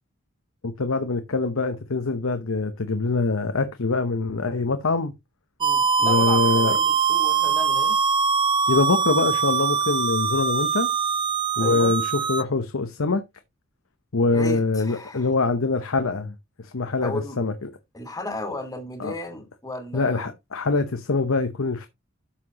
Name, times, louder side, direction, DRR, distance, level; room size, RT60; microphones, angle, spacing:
voice 1, 0.6-5.1 6.0-6.8 8.7-10.9 11.6-13.2 14.1-17.7 19.0-19.1 19.9-21.9, left 3 dB, 85° left, 0.9 m, -24 dB
voice 2, 5.6-8.0 11.6-12.0 14.3-15.3 17.0-17.4 17.9-20.3, left 2 dB, 15° left, 1.9 m, -34 dB
sound 1, 5.6-12.4, right 5 dB, 25° right, 0.4 m, -22 dB
12.5 x 5.9 x 2.9 m
head